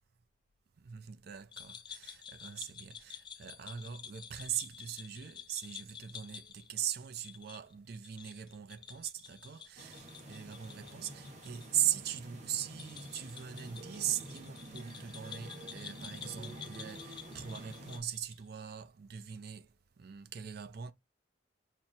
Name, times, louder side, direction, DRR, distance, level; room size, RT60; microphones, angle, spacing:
voice 1, 0.8-20.9, right 10 dB, 55° right, 0.4 m, -40 dB
sound 1, 1.5-11.7 11.9-12.0 12.7-18.4, left 8 dB, 25° left, 0.4 m, -50 dB
sound 2, 9.8-18.0, right 1 dB, 35° right, 1.1 m, -49 dB
5.9 x 2.1 x 2.6 m
head